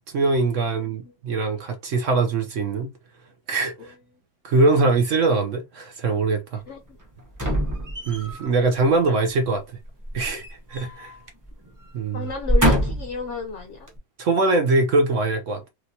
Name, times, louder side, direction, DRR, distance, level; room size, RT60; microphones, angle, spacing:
voice 1, 0.1-2.9 3.5-3.9 4.4-6.6 8.1-9.6 10.1-11.1 11.9-12.3 14.2-15.6, right 3 dB, 65° right, 0.8 m, -22 dB
voice 2, 0.7-1.1 3.8-3.9 6.7-7.0 12.1-13.9, left 5 dB, 70° left, 0.6 m, -34 dB
sound 1, 7.3-8.5 10.0-11.2 11.5-11.7 12.3-13.2 13.9-14.0, equal, 15° right, 0.6 m, -23 dB
3.2 x 3.0 x 2.6 m
omnidirectional pair, 1.8 m